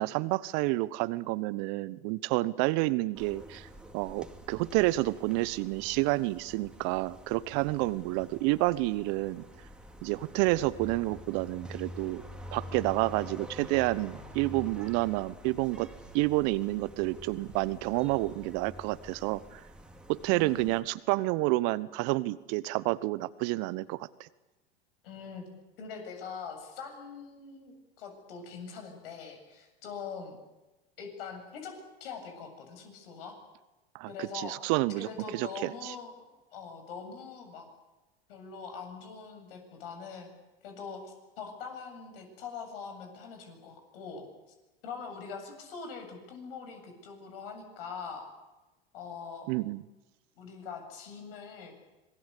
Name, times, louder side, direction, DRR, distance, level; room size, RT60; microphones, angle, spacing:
voice 1, 0.0-3.7 3.9-9.4 10.0-12.2 12.5-15.9 16.1-19.6 20.1-24.3 33.9-35.9 49.5-49.8, right 20 dB, 55° right, 18 dB, 1.1 m, -29 dB
sound 1, 3.1-20.8, equal, 5° right, 3.0 m, -47 dB
voice 2, 20.3-20.7 25.0-25.4 25.8-30.4 31.0-33.4 34.1-34.6 35.0-36.1 36.5-37.7 38.3-40.3 40.6-44.2 44.8-48.2 48.9-49.5 50.4-51.7, left 5 dB, 70° left, 5 dB, 7.6 m, -43 dB
26.0 x 21.0 x 8.4 m, 1.1 s
hypercardioid pair, 90°, 30 cm